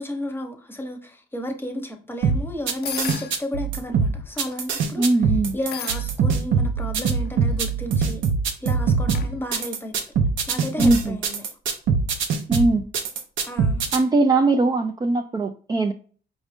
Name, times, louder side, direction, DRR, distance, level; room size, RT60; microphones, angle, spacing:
voice 1, 0.0-5.0 5.5-8.2 8.6-9.9 10.5-11.4 13.4-13.8, equal, 10° left, 0.9 m, -32 dB
sound 1, 2.2-14.0, right 5 dB, 80° right, 0.7 m, -23 dB
sound 2, 2.8-3.4 4.3-4.7 5.6-6.1 7.2-7.6 9.1-9.3, left 9 dB, 55° left, 0.4 m, -34 dB
voice 2, 5.0-5.6 10.8-11.2 12.5-12.9 13.9-15.9, right 2 dB, 20° right, 0.4 m, -20 dB
5.0 x 2.6 x 3.5 m
cardioid pair, 90°, 20 cm